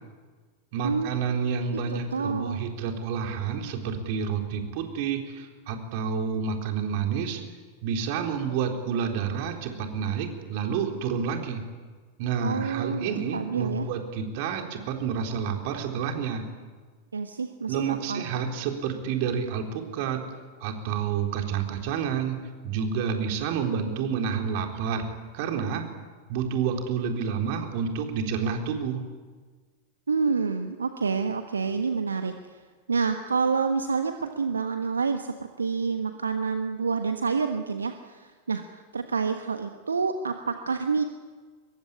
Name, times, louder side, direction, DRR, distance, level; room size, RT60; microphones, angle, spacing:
voice 1, 0.7-7.4 7.8-11.6 12.2-16.4 17.7-20.2 20.6-22.4 22.6-25.1 25.3-25.8 26.3-29.0, right 6 dB, 50° right, 3 dB, 4.0 m, -29 dB
voice 2, 1.7-2.6 12.4-13.9 17.1-18.2 30.1-32.6 32.9-41.0, right 5 dB, 75° right, 7 dB, 1.3 m, -28 dB
24.0 x 22.0 x 10.0 m, 1.5 s
figure-of-eight pair, 90°, 0 cm